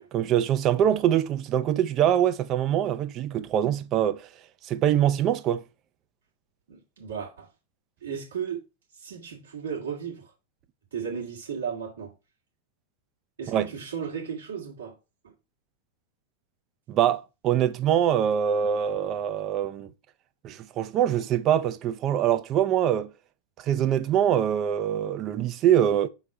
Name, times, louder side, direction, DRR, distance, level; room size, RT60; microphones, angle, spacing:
voice 1, 0.1-4.3 4.6-5.6 13.5-13.7 16.9-19.9 20.4-23.1 23.6-26.1, right 10 dB, 35° right, 0.5 m, -24 dB
voice 2, 6.7-7.5 8.0-8.6 9.0-10.3 10.9-12.1 13.4-15.0 15.2-15.3, right 7 dB, 70° right, 2.2 m, -35 dB
5.3 x 4.0 x 4.7 m
figure-of-eight pair, 90°, 0 cm